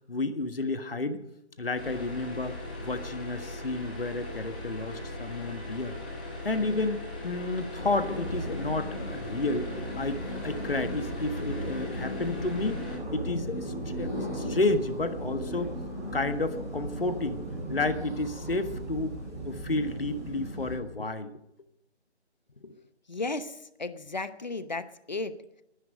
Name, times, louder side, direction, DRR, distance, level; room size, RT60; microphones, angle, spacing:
voice 1, 0.1-1.2 1.6-6.0 6.4-12.8 13.1-15.7 16.1-17.4 17.7-21.3, left 2 dB, 55° left, 10 dB, 1.6 m, -31 dB
sound 1, 1.7-13.0, left 1 dB, 10° left, 0.9 m, -39 dB
sound 2, 7.7-20.8, right 1 dB, 10° right, 5.9 m, -36 dB
voice 2, 22.6-25.6, left 3 dB, 40° left, 13 dB, 0.9 m, -36 dB
21.0 x 10.5 x 5.1 m, 0.84 s
figure-of-eight pair, 155°, 34 cm